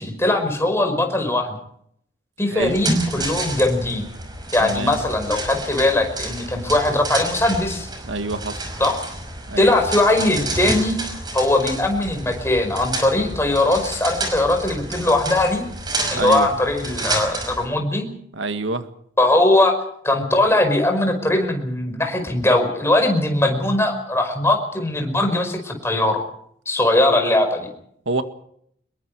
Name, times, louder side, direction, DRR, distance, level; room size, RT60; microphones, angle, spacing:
voice 1, 0.0-1.6 2.4-4.0 4.5-7.9 8.8-9.0 9.6-11.0 11.3-15.6 16.1-18.1 19.2-19.8 20.0-26.2 26.7-27.7, left 2 dB, 15° left, 5 dB, 5.2 m, -20 dB
voice 2, 2.5-2.8 4.6-5.0 8.0-8.6 9.5-9.7 16.1-16.5 18.3-18.9 28.1-28.2, right 2 dB, 85° right, 9 dB, 1.8 m, -26 dB
sound 1, 2.6-17.6, right 2 dB, 20° right, 5.7 m, -29 dB
27.0 x 22.0 x 4.9 m, 0.68 s
head